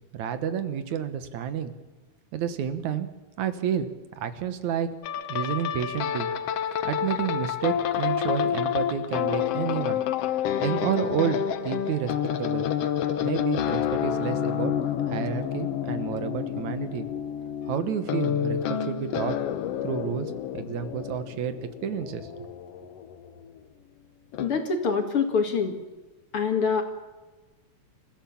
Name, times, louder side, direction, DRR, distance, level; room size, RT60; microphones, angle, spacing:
voice 1, 0.1-1.7 2.3-3.1 3.4-3.9 4.2-4.9 5.3-6.3 6.8-10.0 10.6-12.1 12.4-12.7 13.2-14.7 15.1-17.1 17.7-19.4 19.8-21.6 21.8-22.5, right 9 dB, 75° right, 10 dB, 2.6 m, -30 dB
sound 1, 5.0-23.5 24.3-24.6, left 9 dB, 65° left, 1.8 m, -29 dB
voice 2, 24.4-25.8 26.3-26.8, left 5 dB, 50° left, 5 dB, 2.7 m, -25 dB
28.0 x 15.0 x 7.2 m, 1.2 s
omnidirectional pair, 3.3 m